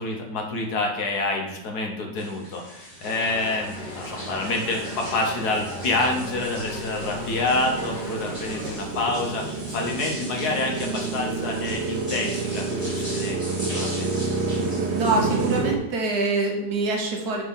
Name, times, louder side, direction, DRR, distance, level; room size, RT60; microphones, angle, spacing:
voice 1, 0.0-9.5 9.7-13.4 13.7-14.1, left 2 dB, 65° left, 1 dB, 1.4 m, -27 dB
sound 1, 2.2-15.6, equal, 10° left, 2.5 m, -40 dB
sound 2, 3.0-8.8, left 2 dB, 35° left, 0.9 m, -38 dB
Motorcycle, 3.1-15.8, right 3 dB, 85° right, 1.4 m, -30 dB
voice 2, 14.9-17.4, right 3 dB, 65° right, 1 dB, 1.5 m, -25 dB
6.1 x 3.6 x 5.5 m, 0.87 s
omnidirectional pair, 1.9 m